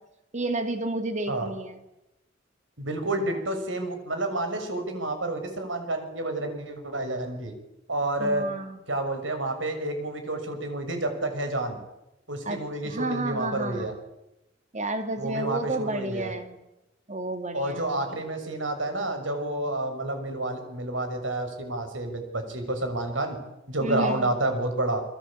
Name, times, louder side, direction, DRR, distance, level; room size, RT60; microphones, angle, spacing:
voice 1, 0.3-1.8 8.2-8.8 12.4-13.9 14.7-16.6 17.1-18.1 23.8-24.3, right 2 dB, 40° right, 8 dB, 2.6 m, -31 dB
voice 2, 2.8-7.5 7.9-8.5 8.9-11.8 12.3-13.9 15.2-16.3 17.5-23.4 23.7-25.0, right 1 dB, 90° right, 6 dB, 6.4 m, -29 dB
29.0 x 22.5 x 8.7 m, 0.91 s
head